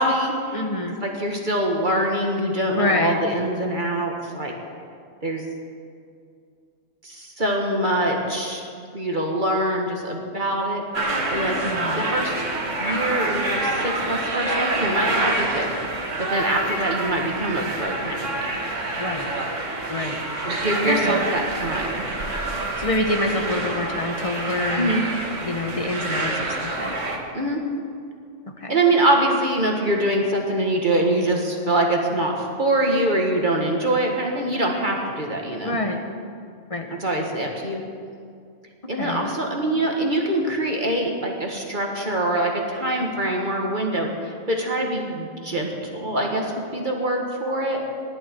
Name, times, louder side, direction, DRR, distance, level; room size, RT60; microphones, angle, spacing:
voice 1, 0.0-0.6 0.9-4.5 5.2-5.4 7.0-8.7 8.9-10.8 11.3-11.6 12.0-12.3 12.8-15.7 16.2-18.4 20.4-22.1 24.7-25.0 27.3-27.6 28.7-35.8 36.9-37.8 38.9-47.8, right 1 dB, 40° right, 0 dB, 1.9 m, -24 dB
voice 2, 0.5-1.0 2.7-3.2 11.6-12.0 19.0-19.3 19.9-20.2 20.8-21.2 22.8-24.9 25.4-27.0 28.6-28.8 35.6-36.0 36.7-36.9 39.0-39.3, left 2 dB, 25° left, 4 dB, 1.4 m, -26 dB
sound 1, 10.9-27.2, right 2 dB, 70° right, 2.2 m, -27 dB
23.5 x 12.0 x 4.6 m, 2.3 s
omnidirectional pair, 1.3 m